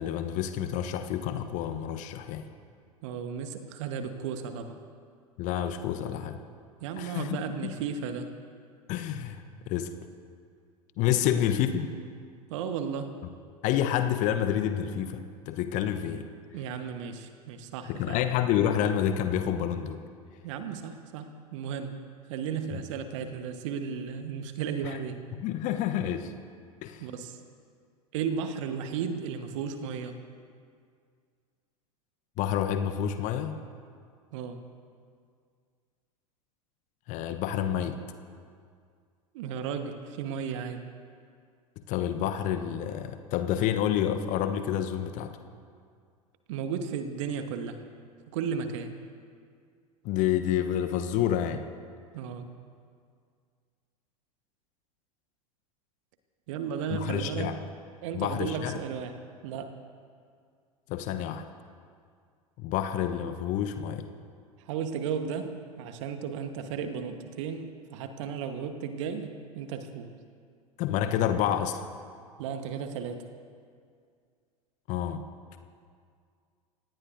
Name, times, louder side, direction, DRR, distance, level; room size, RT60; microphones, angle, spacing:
voice 1, 0.0-2.5 5.4-6.4 7.0-7.4 7.6-7.7 8.9-9.9 11.0-11.9 13.6-16.3 17.9-20.0 22.7-22.8 24.8-25.0 25.4-26.3 26.8-27.1 32.4-33.6 37.1-38.0 41.9-45.4 50.0-51.6 56.9-57.6 58.1-58.8 60.9-61.4 62.6-64.0 70.8-71.8 74.9-75.2, left 10 dB, 45° left, 8 dB, 1.0 m, -29 dB
voice 2, 3.0-4.8 6.8-8.3 11.2-11.4 12.5-13.1 16.5-18.2 20.4-22.0 22.3-25.2 27.0-27.4 28.1-30.2 34.3-34.6 39.3-40.9 46.5-47.8 48.3-48.9 52.1-52.5 56.5-57.6 58.0-59.1 59.4-59.7 64.7-70.1 72.4-73.3, right 7 dB, 55° right, 8 dB, 1.3 m, -34 dB
26.5 x 18.0 x 2.7 m, 2.2 s
figure-of-eight pair, 80°, 19 cm